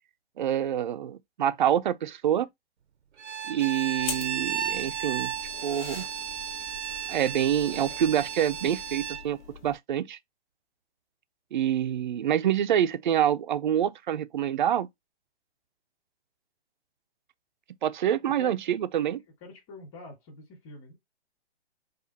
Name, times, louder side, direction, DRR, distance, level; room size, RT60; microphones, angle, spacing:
voice 1, 0.4-2.5 3.5-5.3 5.6-6.1 7.1-10.2 11.5-14.9 17.8-19.2, right 10 dB, 45° right, 0.5 m, -26 dB
Bowed string instrument, 3.2-9.3, right 9 dB, 90° right, 0.7 m, -34 dB
sound 1, 4.0-9.8, left 6 dB, 45° left, 1.6 m, -43 dB
voice 2, 18.2-18.6 19.4-21.0, left 2 dB, 25° left, 1.9 m, -45 dB
5.1 x 2.5 x 4.0 m
hypercardioid pair, 155°, 33 cm